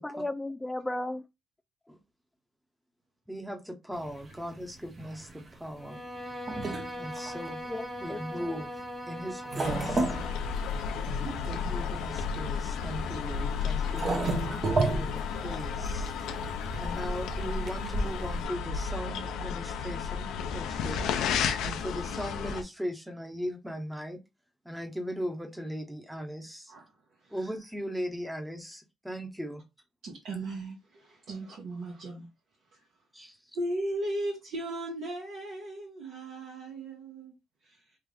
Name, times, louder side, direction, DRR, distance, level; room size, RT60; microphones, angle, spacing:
voice 1, 0.0-1.2 7.7-8.5 14.4-14.9, left 1 dB, 10° left, 0.4 m, -36 dB
voice 2, 3.3-6.0 6.9-7.6 8.0-10.1 11.4-16.1 16.8-21.1 21.6-24.2 24.6-26.7 27.3-29.6 33.1-33.4, equal, 5° right, 0.8 m, -38 dB
sound 1, 3.9-18.5, right 2 dB, 40° right, 0.8 m, -35 dB
Bowed string instrument, 5.8-10.7, equal, 20° right, 1.7 m, -40 dB
sound 2, 9.6-22.6, left 6 dB, 90° left, 0.5 m, -33 dB
voice 3, 30.0-32.3 33.5-37.3 37.7-37.8, right 1 dB, 75° right, 1.3 m, -36 dB
3.3 x 2.6 x 3.4 m
cardioid pair, 90°, 0 cm